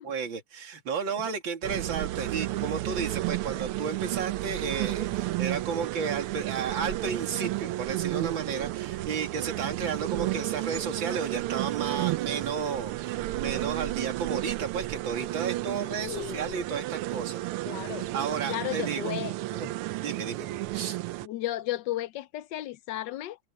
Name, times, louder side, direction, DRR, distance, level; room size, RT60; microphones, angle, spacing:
voice 1, 0.0-17.4 18.1-19.2 19.5-19.7 20.0-21.0, right 6 dB, 65° right, 3.1 m, -33 dB
sound 1, 1.6-21.3, right 17 dB, 90° right, 1.5 m, -32 dB
voice 2, 16.0-16.4 17.6-18.1 18.5-19.3 21.2-23.4, left 14 dB, 70° left, 1.1 m, -34 dB
omnidirectional pair, 2.3 m